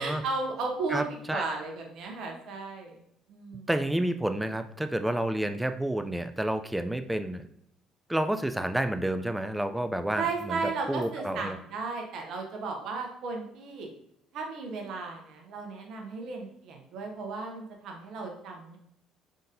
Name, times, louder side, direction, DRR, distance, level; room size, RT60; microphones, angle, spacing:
voice 1, 0.0-1.1 1.3-3.0 3.3-3.7 10.2-13.9 14.3-18.8, right 4 dB, 55° right, 2 dB, 0.9 m, -35 dB
voice 2, 0.9-1.5 3.7-7.4 8.1-10.6 10.9-11.6, right 1 dB, 5° right, 9 dB, 0.3 m, -30 dB
5.1 x 3.7 x 2.6 m, 0.73 s
figure-of-eight pair, 50°, 0 cm